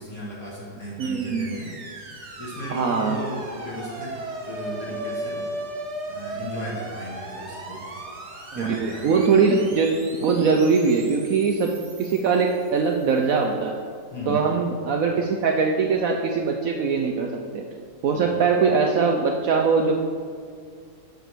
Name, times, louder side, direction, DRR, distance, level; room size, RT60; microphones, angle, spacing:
voice 1, 0.0-4.1 4.4-5.5 6.0-7.9 8.5-9.1 14.1-14.5 18.1-18.4, equal, 50° left, -6 dB, 2.1 m, -35 dB
sound 1, 1.0-13.2, right 2 dB, 45° right, 1.3 m, -37 dB
voice 2, 1.0-1.5 2.7-3.2 8.5-9.9 10.2-13.8 14.3-17.6 18.0-19.9, right 5 dB, 65° right, 2 dB, 0.9 m, -22 dB
7.1 x 6.6 x 6.1 m, 2.1 s
omnidirectional pair, 2.0 m